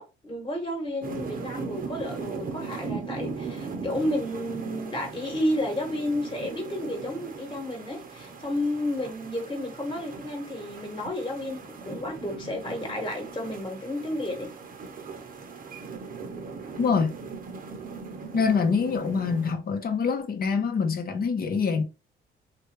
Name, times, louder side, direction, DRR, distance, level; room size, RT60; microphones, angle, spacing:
voice 1, 0.0-14.5, left 1 dB, 25° left, 1.3 m, -31 dB
sound 1, 1.0-19.5, right 4 dB, 45° right, 0.8 m, -39 dB
voice 2, 16.8-17.2 18.3-21.8, left 5 dB, 50° left, 0.9 m, -25 dB
3.3 x 2.5 x 3.0 m
cardioid pair, 90°, 20 cm